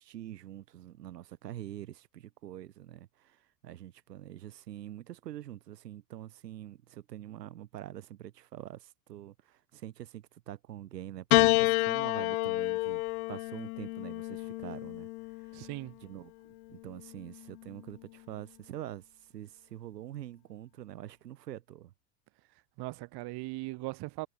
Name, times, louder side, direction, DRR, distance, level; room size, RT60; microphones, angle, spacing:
voice 1, 0.0-13.0 13.3-15.1 15.4-15.6 16.0-19.0 19.3-21.9, right 12 dB, 80° right, 4.7 m, -45 dB
Piano, 11.3-15.8 16.8-17.6, left 25 dB, 65° left, 0.7 m, -29 dB
voice 2, 15.5-16.0 22.8-24.3, right 22 dB, 55° right, 2.3 m, -39 dB
hypercardioid pair, 85°, 48 cm